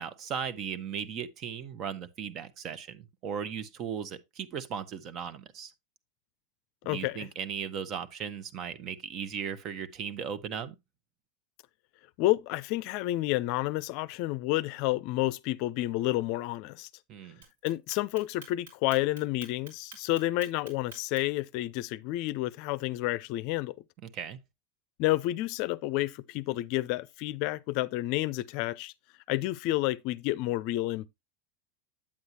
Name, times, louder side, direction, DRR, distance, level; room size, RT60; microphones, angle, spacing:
voice 1, 0.0-5.7 6.9-10.7 17.1-17.4 24.0-24.4, right 7 dB, 45° right, 1.0 m, -37 dB
voice 2, 6.9-7.3 12.2-16.9 17.6-23.7 25.0-28.9 29.3-31.1, left 17 dB, 55° left, 0.5 m, -30 dB
Clock, 17.4-21.4, right 4 dB, 85° right, 4.3 m, -48 dB
8.7 x 7.8 x 2.8 m
hypercardioid pair, 110°, 0 cm